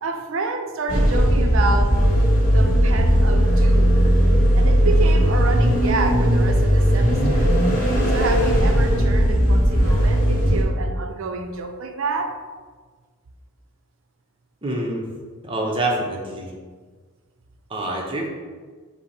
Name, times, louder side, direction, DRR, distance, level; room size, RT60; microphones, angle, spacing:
voice 1, 0.0-2.0 2.5-4.1 4.6-7.5 7.8-12.4, right 3 dB, 70° right, 6 dB, 0.5 m, -29 dB
sound 1, 0.9-10.6, equal, 40° left, 0.9 m, -17 dB
voice 2, 14.6-15.0 15.4-16.5 17.7-18.3, right 1 dB, 25° right, -1 dB, 0.6 m, -26 dB
5.7 x 2.1 x 4.2 m, 1.5 s
head